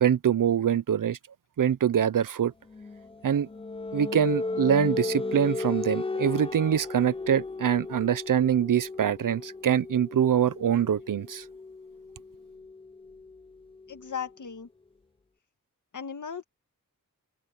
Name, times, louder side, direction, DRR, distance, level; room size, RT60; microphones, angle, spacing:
voice 1, 0.0-1.2 1.6-2.5 3.2-3.5 3.9-11.4, right 9 dB, 75° right, 0.7 m, -24 dB
sound 1, 2.7-14.2, left 3 dB, 15° left, 0.5 m, -35 dB
voice 2, 13.9-14.7 15.9-16.4, left 7 dB, 65° left, 1.8 m, -36 dB
wide cardioid pair, 115°, 33 cm